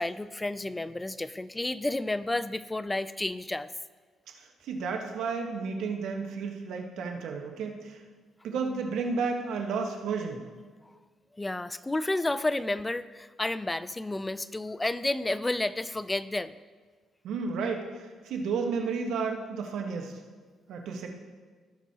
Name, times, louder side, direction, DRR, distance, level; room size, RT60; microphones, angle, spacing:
voice 1, 0.0-3.7 11.3-16.6, left 2 dB, 15° left, 14 dB, 0.4 m, -31 dB
voice 2, 4.3-8.0 8.4-10.4 17.2-20.1 20.7-21.1, right 5 dB, 80° right, 3 dB, 1.3 m, -32 dB
17.0 x 6.0 x 2.9 m, 1.5 s
cardioid pair, 90°, 0 cm